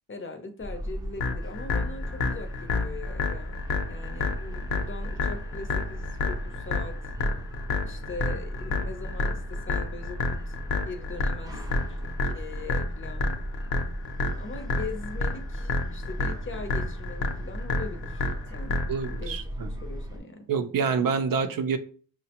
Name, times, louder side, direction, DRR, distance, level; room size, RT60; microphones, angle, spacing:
voice 1, 0.1-3.6 3.9-7.0 7.8-10.2 10.5-10.6 10.8-13.3 14.3-18.8 19.1-20.5, left 3 dB, 30° left, 6 dB, 0.6 m, -41 dB
sound 1, 0.6-20.2, equal, 10° right, 0.6 m, -37 dB
sound 2, 1.2-19.2, left 3 dB, 65° left, 0.8 m, -30 dB
voice 2, 18.9-19.7 20.5-21.8, right 5 dB, 60° right, 8 dB, 0.5 m, -27 dB
5.7 x 2.1 x 2.8 m, 0.42 s
cardioid pair, 100°, 39 cm